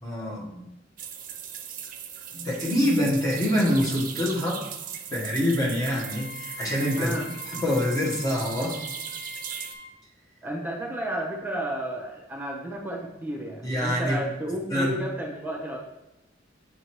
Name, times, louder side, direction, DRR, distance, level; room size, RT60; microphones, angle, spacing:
voice 1, 0.0-0.7 2.3-4.6 5.1-7.2 7.5-8.8 13.6-14.2 14.7-14.9, left 1 dB, 20° left, -4 dB, 1.4 m, -25 dB
sound 1, 1.0-9.7, right 8 dB, 45° right, 0.6 m, -38 dB
Wind instrument woodwind instrument, 5.8-9.9, left 4 dB, 50° left, 0.5 m, -43 dB
voice 2, 7.0-7.3 10.4-15.8, right 1 dB, 10° right, -1 dB, 1.1 m, -32 dB
8.6 x 3.8 x 3.0 m, 0.94 s
head